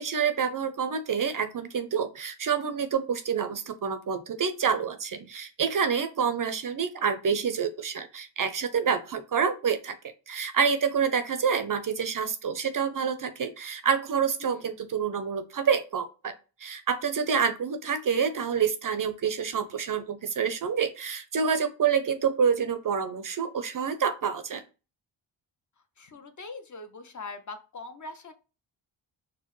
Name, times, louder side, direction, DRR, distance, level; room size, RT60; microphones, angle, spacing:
voice 1, 0.0-9.9 10.3-16.3 16.6-24.6, right 6 dB, 45° right, 9 dB, 0.4 m, -27 dB
voice 2, 26.0-28.3, left 3 dB, 40° left, 8 dB, 0.5 m, -42 dB
4.4 x 2.1 x 3.0 m, 0.33 s
cardioid pair, 65°, 50 cm